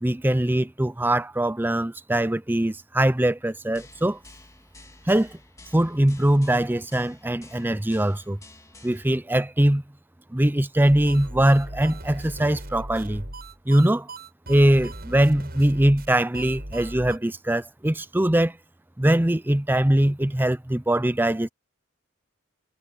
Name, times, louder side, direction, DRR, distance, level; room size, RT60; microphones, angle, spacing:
voice 1, 0.0-4.2 5.1-5.4 5.7-8.4 8.8-9.8 10.3-13.2 13.7-14.1 14.5-18.6 19.0-21.5, right 1 dB, 10° right, 0.6 m, -22 dB
sound 1, 3.7-9.1, left 2 dB, 15° left, 3.3 m, -50 dB
sound 2, 10.8-17.2, right 1 dB, 45° right, 7.8 m, -38 dB
head